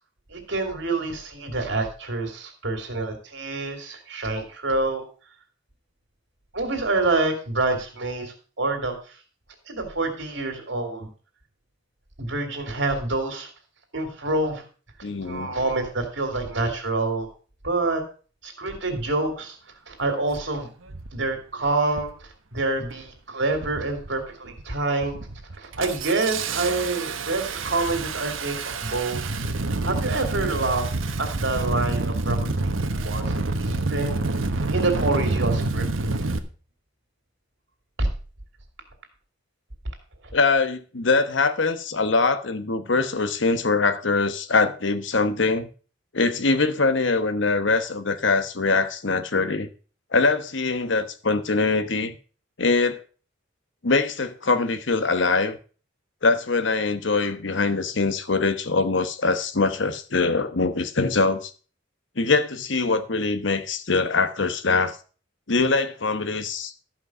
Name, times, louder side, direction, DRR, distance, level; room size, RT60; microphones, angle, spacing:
voice 1, 0.3-5.0 6.5-9.0 9.7-11.1 12.2-13.5 13.9-14.6 15.2-17.3 17.6-18.0 18.4-19.6 19.9-20.7 21.1-22.1 22.5-25.3 25.6-29.2 29.8-30.9 31.2-32.6 32.9-34.3 34.7-35.9 38.0-38.1, right 2 dB, 65° right, 2.8 m, -27 dB
voice 2, 15.0-15.5 40.3-45.7 46.1-49.7 50.1-52.2 52.6-53.0 53.8-55.6 56.2-61.5 62.2-65.0 65.5-66.7, left 3 dB, 65° left, 1.1 m, -23 dB
Engine starting, 20.1-20.2 20.9-21.2 21.9-22.2 22.6-23.1 23.5-24.1 24.5-24.7 25.0-36.4, right 2 dB, 80° right, 1.2 m, -28 dB
13.5 x 5.6 x 6.1 m
head